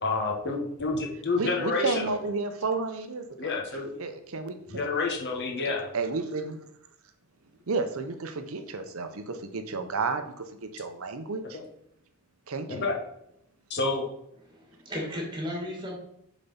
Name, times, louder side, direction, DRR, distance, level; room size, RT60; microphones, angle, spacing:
voice 1, 0.0-2.2 3.4-3.9 4.7-5.9 11.5-11.6 12.7-13.0 13.7-14.1, left 3 dB, 50° left, 0 dB, 1.4 m, -29 dB
voice 2, 1.4-3.6 4.0-4.8 5.6-6.6 7.7-11.6 12.5-12.9, right 4 dB, 65° right, 8 dB, 0.7 m, -32 dB
voice 3, 14.5-16.0, left 1 dB, 20° right, 0 dB, 2.0 m, -35 dB
6.9 x 4.1 x 5.6 m, 0.76 s
head